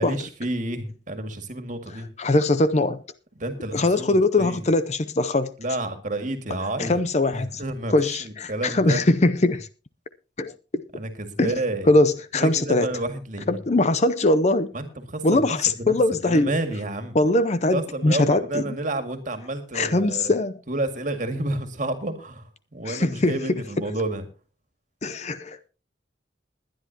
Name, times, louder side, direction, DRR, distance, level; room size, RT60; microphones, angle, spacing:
voice 1, 0.0-2.1 3.4-4.6 5.6-7.0 7.3-9.0 11.0-11.9 12.3-13.6 14.7-15.9 16.3-17.2 17.7-20.3 20.7-22.5 22.7-24.2, right 2 dB, 40° right, 2.0 m, -30 dB
voice 2, 2.2-3.0 3.7-5.5 6.8-7.6 7.9-9.7 10.4-10.5 11.4-11.6 11.9-12.9 13.5-14.7 15.2-16.5 17.1-18.6 19.7-20.5 22.9-23.3 25.0-25.7, left 2 dB, 35° left, 0.6 m, -21 dB
21.0 x 10.5 x 2.9 m
head